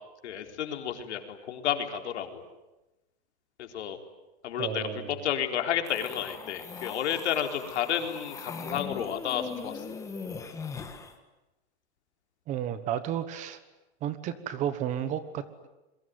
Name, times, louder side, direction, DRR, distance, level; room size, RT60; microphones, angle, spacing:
voice 1, 0.2-2.4 3.6-4.0 4.4-4.8 5.1-9.8, left 9 dB, 80° left, 5 dB, 4.2 m, -31 dB
voice 2, 4.6-5.1 12.5-13.6 14.0-15.7, right 10 dB, 20° right, 13 dB, 1.2 m, -32 dB
sound 1, 5.9-11.1, left 5 dB, 10° left, 1.6 m, -40 dB
27.5 x 23.0 x 9.5 m, 1.0 s
supercardioid pair, 170°, 33 cm